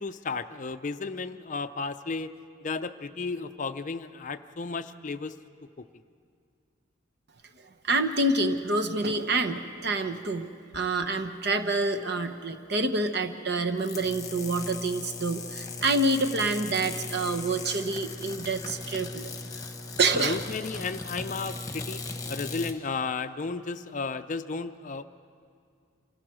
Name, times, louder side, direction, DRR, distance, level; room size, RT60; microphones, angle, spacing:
voice 1, 0.0-5.3 5.8-5.9 20.1-22.0 22.3-25.0, left 4 dB, 40° left, 10 dB, 0.5 m, -34 dB
voice 2, 7.8-19.3 20.0-20.4, right 2 dB, 55° right, 6 dB, 1.0 m, -27 dB
sound 1, 13.8-22.8, left 3 dB, 15° left, 1.2 m, -38 dB
26.5 x 16.5 x 6.2 m, 2.3 s
head